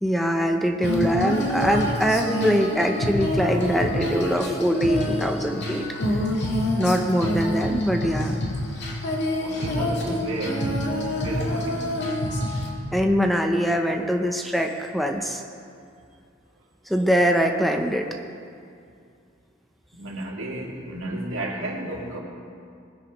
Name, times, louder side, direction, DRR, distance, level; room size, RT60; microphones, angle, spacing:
voice 1, 0.0-5.8 6.8-8.4 12.9-15.4 16.9-18.1, equal, ahead, 3 dB, 0.6 m, -23 dB
Female singing, 0.8-12.7, left 1 dB, 60° left, 1.8 m, -27 dB
voice 2, 9.4-10.9 11.2-12.5 19.9-22.2, right 1 dB, 85° right, -2 dB, 2.3 m, -33 dB
20.0 x 10.0 x 3.1 m, 2.4 s
head